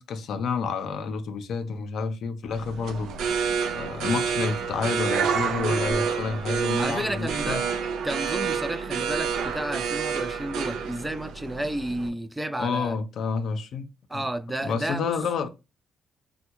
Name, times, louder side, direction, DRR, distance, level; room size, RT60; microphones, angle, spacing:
voice 1, 0.0-3.1 3.7-7.6 12.6-14.2 14.6-15.5, left 5 dB, 70° left, 0.5 m, -29 dB
sound 1, 2.5-12.1, right 6 dB, 80° right, 0.4 m, -28 dB
voice 2, 6.8-7.6 8.0-13.0 14.1-15.1, right 1 dB, 10° right, 0.3 m, -31 dB
3.4 x 2.2 x 2.8 m
cardioid pair, 90°, 0 cm